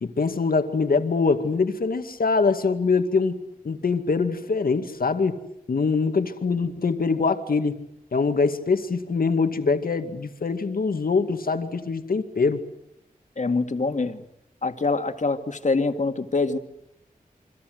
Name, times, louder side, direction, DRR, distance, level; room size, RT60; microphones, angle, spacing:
voice 1, 0.0-5.4 5.7-7.7 8.1-12.6, left 4 dB, 75° left, 7 dB, 2.2 m, -23 dB
voice 2, 13.4-14.2 14.6-16.6, left 3 dB, 55° left, 7 dB, 2.3 m, -24 dB
29.0 x 25.0 x 8.0 m, 0.79 s
wide cardioid pair, 100°, 15 cm